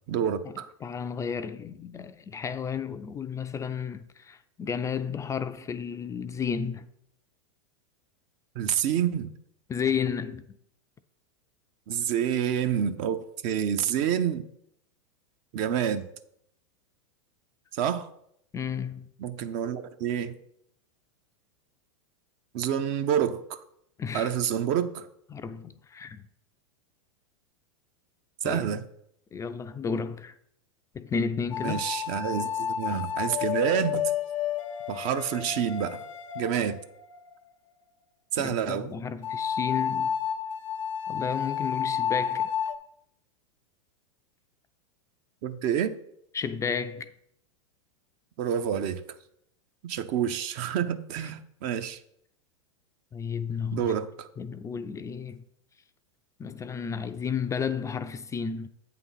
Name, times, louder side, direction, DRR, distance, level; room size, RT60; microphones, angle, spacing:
voice 1, 0.1-0.7 8.5-9.3 11.9-14.4 15.5-16.1 17.7-18.1 19.2-20.3 22.5-23.6 24.1-25.1 28.4-28.8 31.6-34.1 34.9-36.0 36.3-36.8 38.3-38.9 45.4-46.0 48.4-49.0 49.8-52.0 53.7-54.3, right 9 dB, 50° right, 0.7 m, -28 dB
voice 2, 0.8-6.9 9.7-10.5 18.5-19.1 24.0-24.3 25.3-26.2 28.4-28.7 29.3-30.4 30.9-31.8 38.4-40.2 41.1-42.5 46.3-47.1 53.1-53.9 54.4-55.4 56.4-58.7, left 6 dB, 20° left, 0.4 m, -32 dB
sound 1, 31.5-37.3 39.2-42.7, left 8 dB, 75° left, 0.7 m, -31 dB
8.2 x 3.9 x 5.7 m
hypercardioid pair, 100°, 17 cm